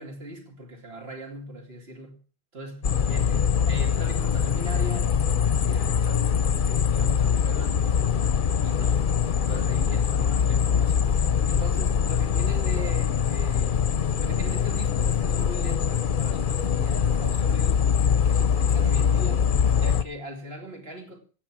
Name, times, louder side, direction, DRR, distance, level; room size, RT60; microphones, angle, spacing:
voice 1, 0.0-2.2 2.5-3.4 3.6-8.3 8.6-9.1 9.4-11.2 11.5-13.8 14.2-17.9 18.2-21.2, right 1 dB, 70° right, 2.9 m, -39 dB
sound 1, 2.8-20.0, left 7 dB, 55° left, 0.8 m, -23 dB
15.0 x 8.5 x 6.1 m
omnidirectional pair, 1.1 m